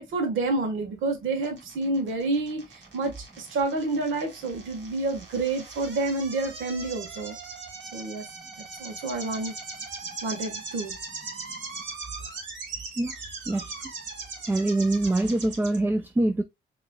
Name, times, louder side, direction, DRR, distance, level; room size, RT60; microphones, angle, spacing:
voice 1, 0.0-7.3 7.9-8.3 8.6-9.6 10.2-10.9 13.3-13.4, right 3 dB, 85° right, 1.5 m, -29 dB
sound 1, 1.4-15.8, right 4 dB, 65° right, 2.0 m, -40 dB
voice 2, 14.5-16.4, right 2 dB, 10° right, 0.3 m, -24 dB
5.0 x 3.1 x 2.2 m
cardioid pair, 90°, 20 cm